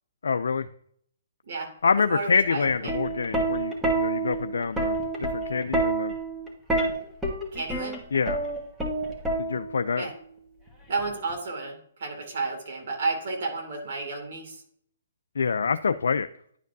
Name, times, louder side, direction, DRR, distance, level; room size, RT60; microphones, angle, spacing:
voice 1, 0.2-0.7 1.8-5.0 5.3-6.1 8.1-8.5 9.4-10.1 15.4-16.3, left 5 dB, 80° left, 9 dB, 0.3 m, -26 dB
voice 2, 2.1-2.9 7.5-8.0 9.9-10.1 10.9-14.6, right 3 dB, 60° right, 2 dB, 2.4 m, -32 dB
Plucked string instrument, 2.8-9.9 11.0-11.3, right 2 dB, 5° right, 1.4 m, -28 dB
10.5 x 5.1 x 2.6 m, 0.64 s
hypercardioid pair, 140°, 0 cm